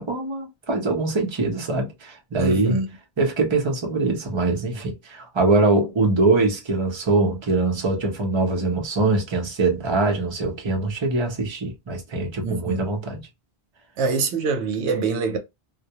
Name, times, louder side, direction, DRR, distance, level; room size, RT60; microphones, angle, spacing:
voice 1, 0.0-2.8 3.2-13.2, right 3 dB, 30° right, 0.7 m, -23 dB
voice 2, 2.4-2.9 12.4-12.9 14.0-15.4, right 4 dB, 85° right, 0.9 m, -24 dB
2.2 x 2.1 x 2.7 m
omnidirectional pair, 1.1 m